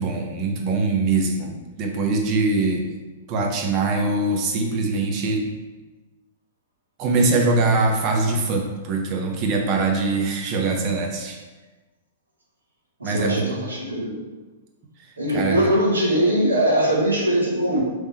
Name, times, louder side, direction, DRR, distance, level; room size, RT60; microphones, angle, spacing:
voice 1, 0.0-2.9 3.3-5.5 7.0-11.4 13.0-13.5 15.0-15.7, right 3 dB, 35° right, 1 dB, 0.8 m, -23 dB
voice 2, 13.0-14.2 15.2-17.8, right 1 dB, 80° right, -3 dB, 1.1 m, -21 dB
3.5 x 3.2 x 4.3 m, 1.2 s
figure-of-eight pair, 105°, 0 cm